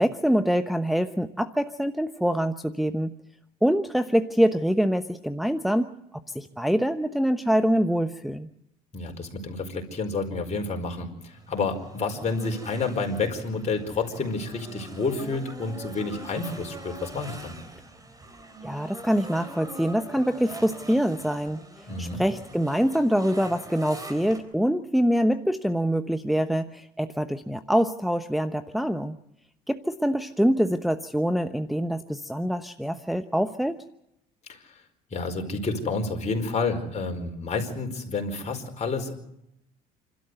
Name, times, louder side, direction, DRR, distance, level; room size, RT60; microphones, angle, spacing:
voice 1, 0.0-3.1 3.6-5.9 6.3-8.5 18.6-21.6 22.0-29.2 29.7-33.8, equal, ahead, 8 dB, 0.9 m, -25 dB
voice 2, 8.9-17.5 21.9-22.2 34.5-34.6 35.1-39.1, left 3 dB, 35° left, 4 dB, 4.7 m, -29 dB
sound 1, 11.2-24.4, right 2 dB, 20° right, 4.2 m, -43 dB
27.5 x 13.0 x 8.0 m, 0.83 s
supercardioid pair, 80°, 19 cm